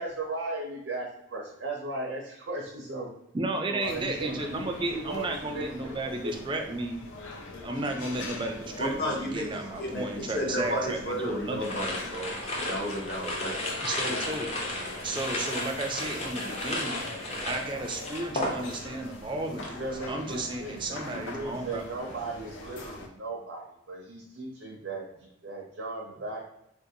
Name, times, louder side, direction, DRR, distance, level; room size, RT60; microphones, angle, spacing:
voice 1, 0.0-3.1 3.6-6.7 19.5-26.4, right 2 dB, 85° right, -1 dB, 0.6 m, -37 dB
voice 2, 3.3-7.0 7.6-11.9 13.8-14.5 15.0-17.1 17.4-19.8 20.1-21.8, right 2 dB, 25° right, 4 dB, 0.3 m, -33 dB
sound 1, 3.8-23.1, left 2 dB, 80° left, 0.5 m, -43 dB
voice 3, 8.8-9.5 9.8-12.4 12.6-13.6, equal, 50° left, -1 dB, 0.8 m, -32 dB
sound 2, 11.6-19.0 19.3-19.8, left 1 dB, 35° left, 0.5 m, -34 dB
3.6 x 2.5 x 2.7 m, 0.81 s
head